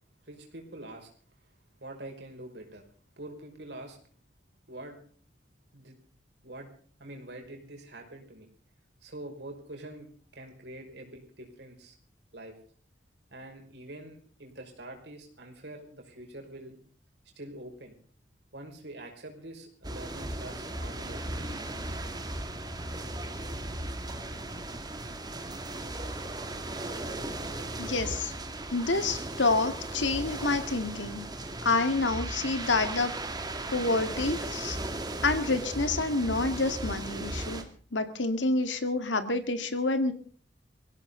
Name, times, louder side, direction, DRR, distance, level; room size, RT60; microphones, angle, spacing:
voice 1, 0.2-1.1 1.8-2.8 3.2-4.0 4.7-5.0 5.7-6.0 6.4-6.7 7.0-8.5 9.0-10.1 10.3-12.0 12.3-12.5 13.3-16.8 17.4-18.0 18.5-21.5, right 1 dB, 65° right, 3 dB, 5.4 m, -45 dB
sound 1, 19.8-37.6, right 1 dB, 20° right, 2.2 m, -37 dB
voice 2, 27.8-28.3 28.7-31.2 31.6-33.1 33.7-34.8 35.2-37.6 37.9-40.1, left 3 dB, 85° left, 9 dB, 2.1 m, -28 dB
22.5 x 16.5 x 3.9 m, 0.44 s
head